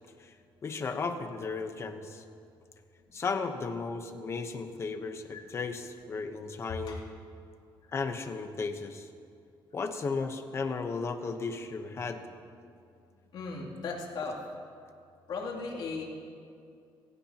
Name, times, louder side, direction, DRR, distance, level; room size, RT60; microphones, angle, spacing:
voice 1, 0.6-2.2 3.1-7.0 7.9-9.1 9.7-12.2, left 4 dB, 30° left, 6 dB, 1.0 m, -35 dB
voice 2, 13.3-14.4 15.3-16.0, left 4 dB, 60° left, -3 dB, 3.0 m, -36 dB
26.0 x 16.0 x 3.0 m, 2.5 s
cardioid pair, 165°, 9 cm